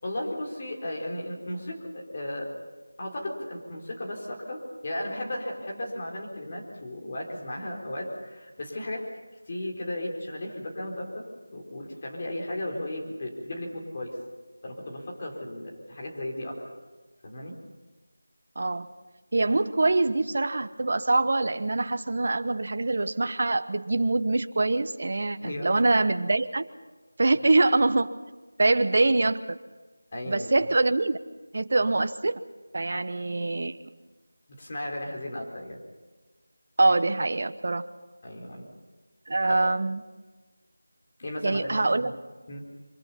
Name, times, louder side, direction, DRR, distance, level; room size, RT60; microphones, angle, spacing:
voice 1, 0.0-2.5 3.0-9.1 9.5-14.1 14.6-16.6 17.2-17.6 25.4-25.8 30.1-30.5 32.9-33.0 34.5-35.8 38.2-38.7 39.5-39.6 41.2-42.1 42.5-42.6, left 1 dB, 30° left, -1 dB, 4.1 m, -35 dB
voice 2, 18.6-18.9 19.3-26.6 27.2-28.1 28.6-29.6 30.3-31.2 31.5-32.4 32.7-33.8 36.8-37.8 39.3-40.0 41.4-42.1, right 2 dB, 45° right, 10 dB, 1.0 m, -24 dB
24.5 x 23.5 x 5.7 m, 1.3 s
figure-of-eight pair, 175°, 0 cm